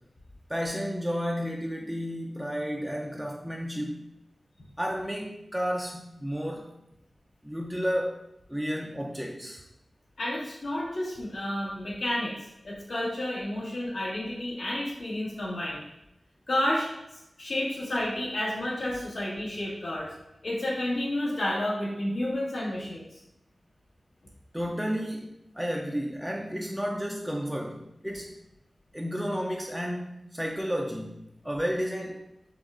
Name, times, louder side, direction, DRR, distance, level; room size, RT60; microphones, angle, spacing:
voice 1, 0.5-4.0 4.8-6.7 7.4-8.2 8.5-9.6 24.5-28.3 28.9-32.2, equal, 5° right, -1 dB, 0.4 m, -32 dB
voice 2, 10.2-12.4 12.6-15.8 16.5-16.9 17.4-20.1 20.4-23.2, left 1 dB, 80° left, -6 dB, 1.7 m, -30 dB
5.8 x 2.4 x 3.7 m, 0.85 s
wide cardioid pair, 90°, 0 cm